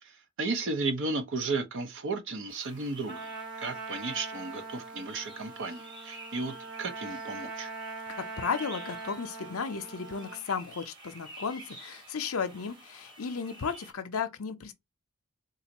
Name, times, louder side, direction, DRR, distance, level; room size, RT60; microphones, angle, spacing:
voice 1, 0.0-3.3 3.6-7.7, right 3 dB, 55° right, 0.7 m, -34 dB
sound 1, 2.5-13.9, right 1 dB, 20° right, 1.0 m, -51 dB
Trumpet, 3.1-10.4, right 3 dB, 90° right, 2.4 m, -42 dB
voice 2, 8.1-14.7, left 6 dB, 70° left, 0.6 m, -34 dB
3.9 x 2.5 x 3.0 m
head